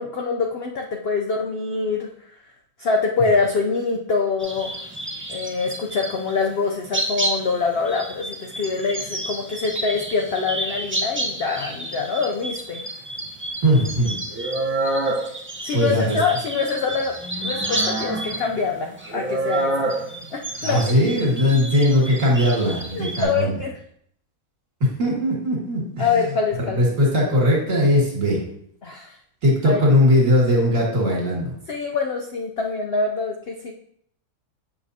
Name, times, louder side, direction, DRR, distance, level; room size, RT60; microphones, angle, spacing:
voice 1, 0.0-2.1 2.8-4.7 5.3-12.8 15.6-19.7 20.3-20.9 22.9-23.7 26.0-26.8 28.8-29.2 29.6-29.8 31.7-33.7, left 4 dB, 65° left, 2 dB, 0.6 m, -25 dB
sound 1, 4.4-6.5 6.9-23.2, right 2 dB, 15° right, 0.4 m, -29 dB
voice 2, 13.6-14.2 15.7-16.2 20.6-23.5 25.0-26.1 26.6-28.4 29.4-31.5, equal, 55° right, -3 dB, 2.3 m, -19 dB
7.3 x 5.5 x 2.7 m, 0.67 s
omnidirectional pair, 1.7 m